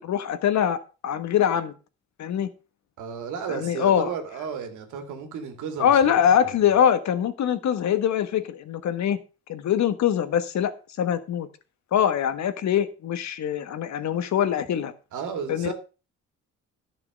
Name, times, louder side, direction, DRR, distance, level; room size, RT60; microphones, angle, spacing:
voice 1, 0.0-1.7 2.2-2.5 3.5-4.1 5.8-9.2 9.5-10.7 11.0-11.5 11.9-14.9 15.5-15.7, left 9 dB, 65° left, 1.3 m, -23 dB
voice 2, 3.0-6.7 15.1-15.7, right 6 dB, 80° right, 2.6 m, -34 dB
11.5 x 6.8 x 5.1 m
cardioid pair, 90°, 30 cm